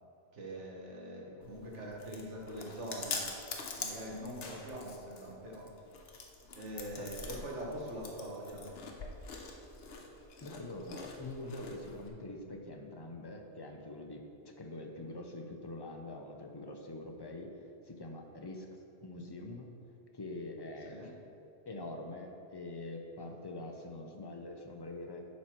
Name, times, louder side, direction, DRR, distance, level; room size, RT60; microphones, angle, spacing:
voice 1, 0.3-3.2 3.8-5.7 6.5-8.7 20.8-21.1, right 1 dB, 85° right, -2 dB, 1.6 m, -43 dB
Chewing mastication, 1.4-12.1, left 4 dB, 60° left, 1.0 m, -45 dB
sound 1, 4.4-5.4, left 3 dB, 80° left, 1.3 m, -52 dB
voice 2, 10.4-17.5 17.8-18.7 19.0-19.7 20.1-21.1 21.7-25.3, left 2 dB, 30° left, 3 dB, 0.5 m, -44 dB
11.0 x 4.2 x 4.5 m, 2.7 s
omnidirectional pair, 1.2 m